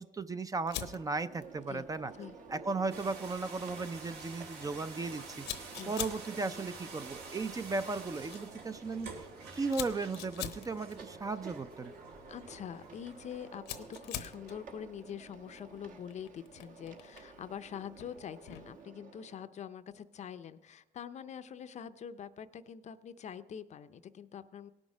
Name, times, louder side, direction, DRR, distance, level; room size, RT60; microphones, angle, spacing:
voice 1, 0.0-2.1 2.5-5.4 5.9-9.1 9.5-11.9, right 3 dB, 20° right, 12 dB, 0.4 m, -36 dB
Fire, 0.7-18.8, left 11 dB, 85° left, 0.9 m, -48 dB
sound 1, 0.8-19.4, right 4 dB, 50° right, 1.2 m, -53 dB
sound 2, 2.9-13.6, right 4 dB, 75° right, 1.9 m, -49 dB
voice 2, 12.3-24.7, left 8 dB, 45° left, 12 dB, 0.5 m, -45 dB
18.0 x 6.2 x 5.0 m, 1.0 s
cardioid pair, 110°, 17 cm